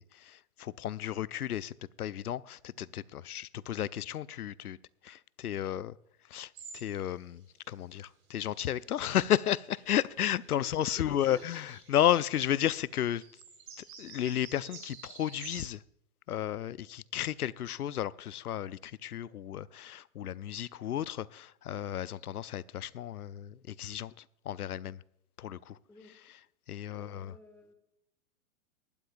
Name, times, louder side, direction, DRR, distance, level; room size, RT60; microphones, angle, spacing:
voice 1, 0.0-4.8 5.0-5.9 6.3-13.2 13.8-15.8 16.3-24.1 24.5-25.0 25.4-25.8 26.7-27.3, left 11 dB, 90° left, 21 dB, 0.6 m, -33 dB
sound 1, 6.5-7.0 7.4-7.5 8.2-12.6 12.9-13.0 13.2-15.7, right 5 dB, 30° right, 4.4 m, -51 dB
voice 2, 10.6-11.4 25.7-26.2 26.9-27.7, left 2 dB, 5° left, 6 dB, 1.8 m, -54 dB
18.5 x 12.0 x 2.5 m, 0.79 s
hypercardioid pair, 120°, 43 cm